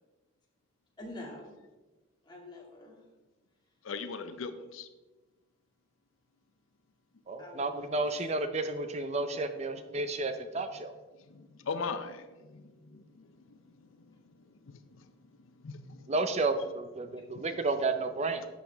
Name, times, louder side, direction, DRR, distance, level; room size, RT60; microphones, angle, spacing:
voice 1, 1.0-1.6 2.2-3.1 7.4-8.0 17.2-17.3, left 1 dB, 20° left, -3 dB, 2.3 m, -46 dB
voice 2, 3.8-4.9 11.3-12.6 12.9-13.0 15.6-16.1, left 4 dB, 85° left, 10 dB, 0.6 m, -38 dB
voice 3, 7.3-10.9 16.1-18.5, right 3 dB, 35° right, 9 dB, 0.5 m, -32 dB
11.5 x 7.7 x 3.5 m, 1.2 s
head